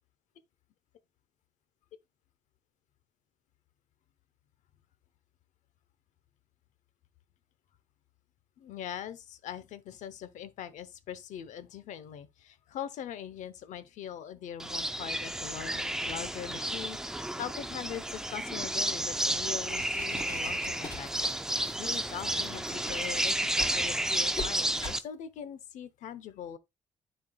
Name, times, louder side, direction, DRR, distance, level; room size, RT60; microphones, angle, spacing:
voice 1, 8.6-21.1 21.4-26.6, left 9 dB, 85° left, 0.8 m, -42 dB
sound 1, 14.6-25.0, right 1 dB, 5° right, 0.4 m, -32 dB
sound 2, 19.5-23.8 24.3-24.5 24.8-25.0, left 3 dB, 30° left, 3.4 m, -43 dB
10.5 x 4.5 x 2.3 m
cardioid pair, 165°, 12 cm